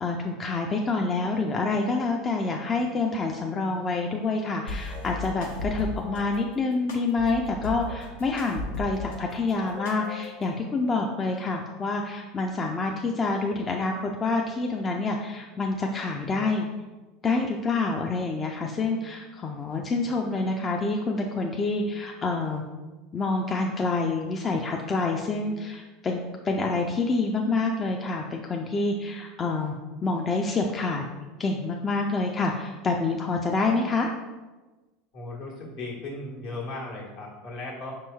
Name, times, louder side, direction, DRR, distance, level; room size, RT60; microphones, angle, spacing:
voice 1, 0.0-16.7 17.2-22.6 23.1-26.2 26.4-29.8 30.0-31.0 31.4-34.1, left 3 dB, 30° left, 1 dB, 0.4 m, -27 dB
sound 1, 4.7-6.2 6.9-9.2 9.5-10.5, left 2 dB, 80° left, 0.7 m, -36 dB
voice 2, 35.1-37.9, left 2 dB, 65° left, -4 dB, 1.3 m, -36 dB
5.4 x 2.9 x 2.3 m, 1.2 s
hypercardioid pair, 85°, 0 cm